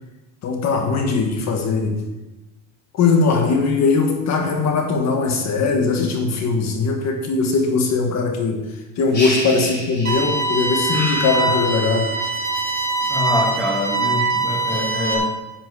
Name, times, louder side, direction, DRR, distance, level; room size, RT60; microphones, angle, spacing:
voice 1, 0.4-2.0 2.9-8.6 9.0-12.1, left 4 dB, 45° left, 4 dB, 1.5 m, -20 dB
sound 1, 9.1-10.5 10.9-12.2, left 1 dB, 25° left, 3.9 m, -30 dB
sound 2, 10.0-15.1, right 3 dB, 25° right, 1.8 m, -23 dB
voice 2, 13.1-15.3, left 1 dB, 5° left, 0 dB, 1.4 m, -25 dB
10.0 x 7.6 x 4.8 m, 1.0 s
cardioid pair, 145°, 39 cm